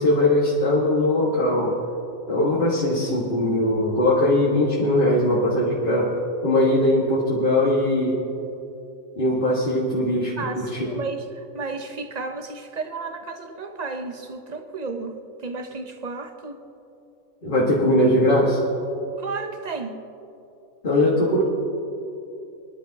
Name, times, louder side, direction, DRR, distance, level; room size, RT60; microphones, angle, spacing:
voice 1, 0.0-1.7 2.3-6.1 6.4-8.2 9.2-10.9 17.4-18.6 20.8-21.4, left 1 dB, 40° left, -5 dB, 1.7 m, -20 dB
voice 2, 10.4-15.1 15.4-16.6 19.2-20.0, right 3 dB, 40° right, 6 dB, 0.7 m, -33 dB
24.5 x 11.0 x 2.8 m, 2.7 s
omnidirectional pair, 1.4 m